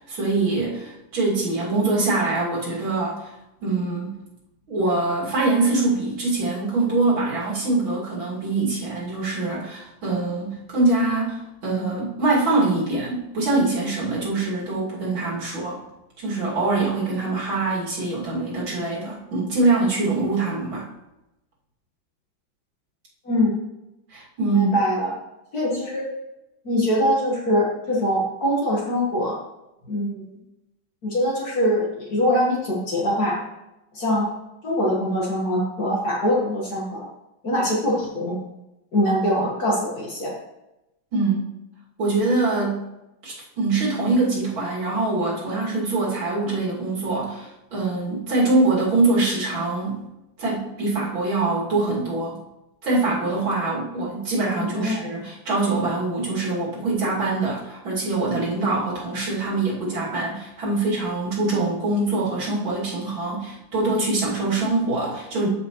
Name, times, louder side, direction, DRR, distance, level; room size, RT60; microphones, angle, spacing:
voice 1, 0.1-3.3 3.6-4.2 4.7-15.8 16.2-20.9 24.1-24.7 41.1-41.4 42.0-42.8 43.2-50.0 50.4-52.4 52.8-65.5, right 3 dB, 80° right, -5 dB, 3.2 m, -24 dB
voice 2, 23.2-23.6 24.4-25.1 25.5-26.1 26.7-29.4 29.9-30.3 31.0-33.4 33.9-34.3 34.6-37.1 37.4-38.4 38.9-40.3 54.6-55.0, equal, 50° left, -4 dB, 2.0 m, -23 dB
12.5 x 5.3 x 3.0 m, 0.93 s
omnidirectional pair, 2.2 m